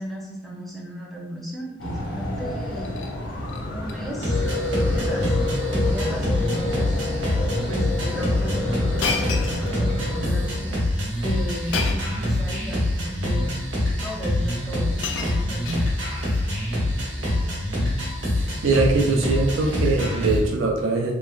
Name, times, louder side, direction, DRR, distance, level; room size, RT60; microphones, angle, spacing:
voice 1, 0.0-3.0 3.7-5.4 5.7-6.9 7.7-10.7 11.2-13.5 14.0-15.9, equal, ahead, -4 dB, 0.5 m, -34 dB
sound 1, 1.8-10.8, left 2 dB, 80° left, 0.8 m, -29 dB
Shatter, 2.7-3.1 3.5-4.0 4.3-4.5 4.8-4.9 5.8-6.0 6.3-6.6 7.4-7.5 9.0-10.1 11.7-12.2 13.2-13.3 14.4-14.5 14.7-16.2 17.2-17.5, left 5 dB, 65° left, 0.3 m, -32 dB
sound 2, 4.2-20.4, left 1 dB, 65° right, 1.0 m, -25 dB
voice 2, 18.3-21.1, right 3 dB, 80° right, 0 dB, 0.5 m, -22 dB
3.1 x 2.3 x 2.3 m, 0.92 s
head